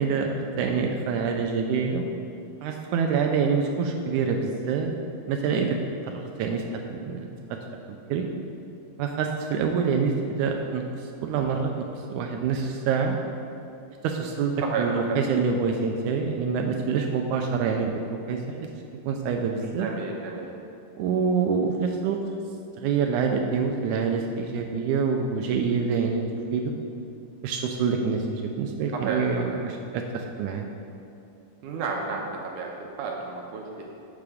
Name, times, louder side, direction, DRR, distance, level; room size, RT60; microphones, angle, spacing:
voice 1, 0.0-2.1 2.6-4.9 5.3-5.8 6.1-7.3 8.1-8.3 9.0-13.2 14.0-18.4 19.1-19.9 21.0-22.2 22.8-26.2 26.5-26.7 27.4-30.7, right 5 dB, 90° right, 3 dB, 1.7 m, -26 dB
voice 2, 14.6-15.2 19.6-20.5 28.9-29.6 31.6-33.8, right 4 dB, 75° right, 0 dB, 2.1 m, -32 dB
11.5 x 7.8 x 3.6 m, 2.7 s
omnidirectional pair, 4.1 m